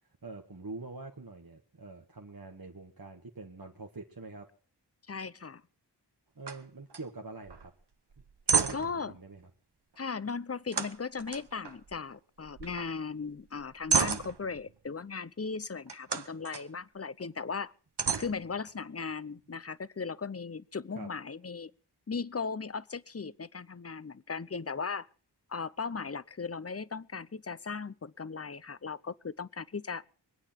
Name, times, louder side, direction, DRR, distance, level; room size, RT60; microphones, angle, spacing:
voice 1, 0.2-4.5 6.4-7.7 8.5-9.5 20.9-21.1, right 3 dB, 55° right, 2.0 m, -45 dB
voice 2, 5.1-5.6 8.7-9.2 10.0-17.7 18.2-21.7 22.1-25.1 25.5-30.0, left 5 dB, 35° left, 0.8 m, -37 dB
sound 1, 6.5-6.6 6.9-7.0 7.5-7.7 8.1-9.0 10.7-12.2 12.5-13.0 13.4-14.7 15.9-16.7 17.2-17.3 18.0-19.0, right 5 dB, 75° right, 1.2 m, -32 dB
24.5 x 8.8 x 5.9 m
wide cardioid pair, 50°, 41 cm